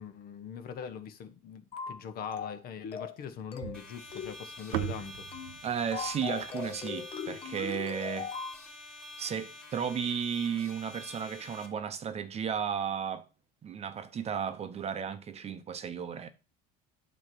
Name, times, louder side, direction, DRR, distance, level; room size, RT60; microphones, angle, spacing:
voice 1, 0.0-5.3, left 7 dB, 50° left, 1.1 m, -42 dB
sound 1, 1.7-2.0 2.3-2.6 2.9-3.2 3.5-3.8 4.1-4.4 4.7-5.0 5.3-5.5 5.9-8.6, left 6 dB, 30° left, 1.0 m, -39 dB
sound 2, 3.6-7.9, right 18 dB, 80° right, 0.4 m, -40 dB
sound 3, 3.7-11.7, left 2 dB, 5° left, 3.2 m, -48 dB
voice 2, 5.6-8.3 9.2-13.2 13.6-16.3, right 7 dB, 30° right, 0.8 m, -34 dB
8.7 x 3.1 x 6.1 m
supercardioid pair, 105°, 20 cm